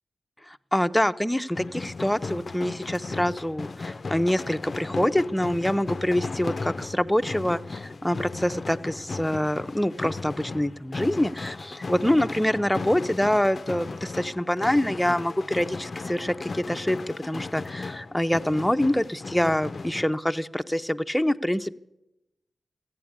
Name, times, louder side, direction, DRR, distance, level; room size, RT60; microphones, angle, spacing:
voice 1, 0.5-21.7, left 1 dB, 5° left, 10 dB, 0.6 m, -25 dB
sound 1, 1.5-20.1, left 3 dB, 55° left, 0.4 m, -36 dB
14.5 x 8.9 x 8.5 m, 0.91 s
cardioid pair, 50°, 0 cm